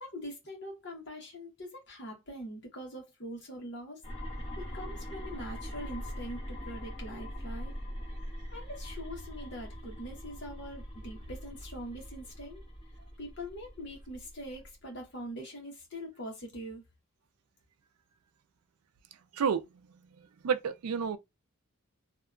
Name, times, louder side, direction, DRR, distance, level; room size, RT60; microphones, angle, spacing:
voice 1, 0.0-4.0 4.6-7.7 8.5-12.6 13.2-16.8, equal, 50° left, 1.0 m, -43 dB
sound 1, 4.0-14.7, equal, 25° left, 1.1 m, -42 dB
voice 2, 20.2-21.2, right 6 dB, 85° right, 0.4 m, -30 dB
2.7 x 2.2 x 2.4 m
head